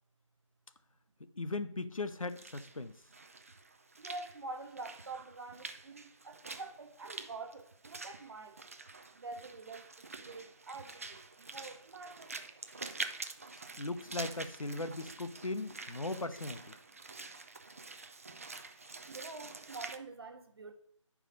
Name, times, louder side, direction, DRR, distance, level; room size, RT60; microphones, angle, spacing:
voice 1, 1.4-3.0 13.8-16.7, left 2 dB, 85° left, 0.8 m, -38 dB
Walk footsteps / Splash splatter, 2.1-20.0, right 3 dB, 25° right, 0.4 m, -47 dB
voice 2, 4.0-8.6 9.2-9.8 10.2-12.3 12.6-12.8 19.1-20.7, right 3 dB, 50° right, 1.1 m, -46 dB
9.9 x 4.9 x 5.1 m
figure-of-eight pair, 160°, 17 cm